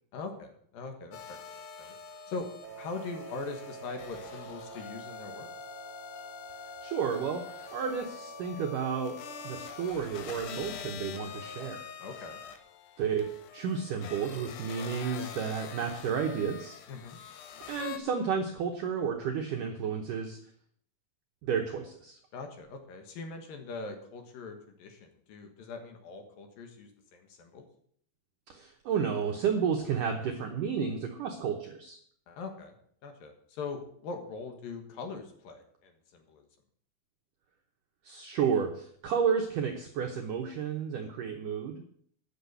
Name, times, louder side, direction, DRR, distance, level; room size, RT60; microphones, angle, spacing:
voice 1, 0.1-1.9 2.3-2.5 2.7-5.5 12.0-12.4 16.9-17.2 22.3-27.6 32.3-32.7 33.0-36.5, left 4 dB, 60° left, 4 dB, 2.7 m, -42 dB
sound 1, 1.1-18.0, left 8 dB, 90° left, 3.4 m, -45 dB
Wind instrument woodwind instrument, 2.6-9.9, right 9 dB, 65° right, 2.7 m, -48 dB
voice 2, 6.8-7.4 7.7-9.2 9.4-11.8 13.0-16.8 17.6-20.4 21.4-22.2 28.5-32.0 38.0-41.8, right 6 dB, 90° right, 3 dB, 1.8 m, -31 dB
9.9 x 6.5 x 8.1 m, 0.63 s
omnidirectional pair, 5.2 m